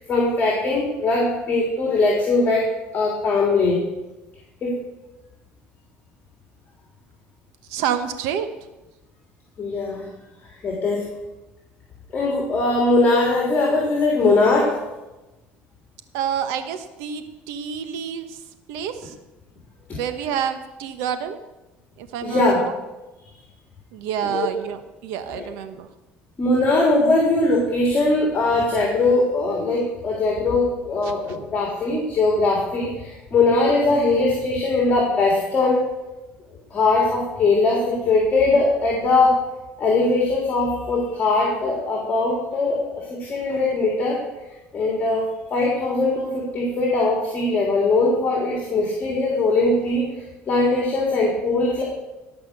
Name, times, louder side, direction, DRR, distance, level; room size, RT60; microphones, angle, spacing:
voice 1, 0.0-2.7 2.9-3.8 4.6-4.7 9.6-10.1 10.6-11.1 12.1-14.7 19.9-20.0 22.2-22.6 24.2-24.5 25.3-25.4 26.4-35.9 36.7-39.4 39.8-44.2 44.7-45.2 45.5-50.0 50.5-51.8, left 2 dB, 35° left, -2 dB, 3.6 m, -20 dB
voice 2, 7.7-8.5 16.1-18.4 18.7-19.1 20.0-21.4 22.0-22.7 23.9-25.9 31.0-31.4, right 8 dB, 90° right, 9 dB, 1.2 m, -28 dB
17.5 x 6.1 x 6.9 m, 1.0 s
cardioid pair, 115°, 5 cm